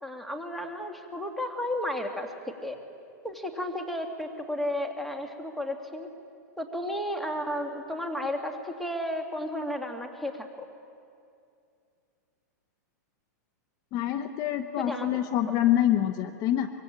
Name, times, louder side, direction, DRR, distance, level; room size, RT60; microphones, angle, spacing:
voice 1, 0.0-2.8 3.2-6.1 6.6-10.7 14.8-15.1, left 1 dB, ahead, 3 dB, 2.3 m, -33 dB
voice 2, 13.9-16.7, left 12 dB, 40° left, 9 dB, 1.0 m, -26 dB
24.0 x 23.0 x 8.8 m, 2.5 s
hypercardioid pair, 140°, 10 cm